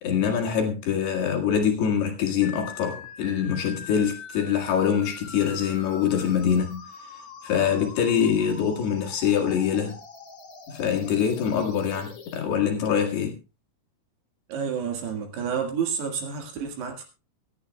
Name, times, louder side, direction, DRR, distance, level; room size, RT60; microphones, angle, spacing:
voice 1, 0.0-6.8 7.4-10.0 10.7-13.4, left 8 dB, 60° left, 3.5 m, -24 dB
sound 1, 2.4-12.4, left 5 dB, 45° left, 4.2 m, -43 dB
voice 2, 14.5-17.0, right 7 dB, 65° right, 3.6 m, -29 dB
24.5 x 11.0 x 2.3 m
omnidirectional pair, 5.7 m